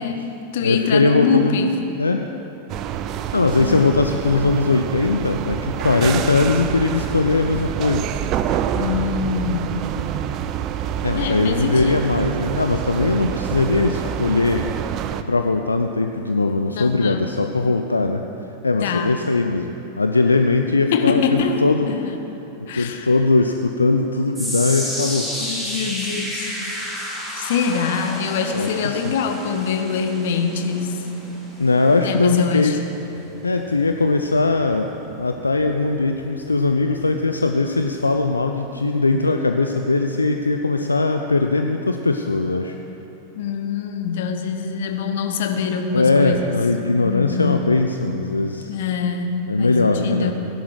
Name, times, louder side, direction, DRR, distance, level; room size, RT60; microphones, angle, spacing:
voice 1, 0.0-1.8 3.6-4.0 8.7-9.8 11.2-12.0 16.7-17.2 18.8-19.1 20.9-22.2 22.7-23.1 25.4-26.5 27.4-31.1 32.0-32.8 43.4-46.6 47.0-47.7 48.7-50.3, left 6 dB, 55° left, 6 dB, 1.1 m, -24 dB
voice 2, 0.6-1.5 2.0-2.3 3.3-8.1 11.0-14.7 15.3-18.2 18.6-21.9 22.7-25.5 26.4-26.6 28.5-29.1 31.6-32.8 33.4-42.8 45.9-48.7 49.5-50.3, left 3 dB, 80° left, 6 dB, 0.5 m, -20 dB
sound 1, 2.7-15.2, right 10 dB, 35° right, 0.6 m, -27 dB
sound 2, 24.3-36.7 37.0-37.3 38.0-38.1, equal, 5° right, 2.9 m, -32 dB
17.0 x 11.0 x 4.9 m, 3.0 s
figure-of-eight pair, 90°, 0 cm